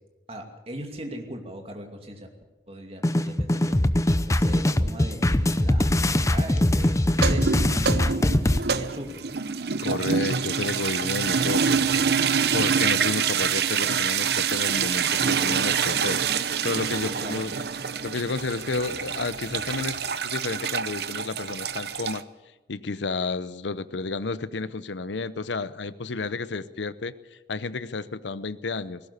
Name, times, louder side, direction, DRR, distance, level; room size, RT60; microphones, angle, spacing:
voice 1, 0.3-2.3 2.7-3.8 4.3-5.9 6.3-9.2 17.0-17.4, right 1 dB, 35° right, 3 dB, 2.6 m, -39 dB
sound 1, 3.0-8.6, left 1 dB, 15° left, 0.6 m, -22 dB
sound 2, 7.1-22.2, right 6 dB, 60° right, 0.8 m, -26 dB
voice 2, 9.8-12.2 12.5-17.5 17.8-22.2 22.7-27.1 27.5-29.0, left 3 dB, 85° left, 16 dB, 0.8 m, -31 dB
18.5 x 17.0 x 8.3 m, 1.1 s
head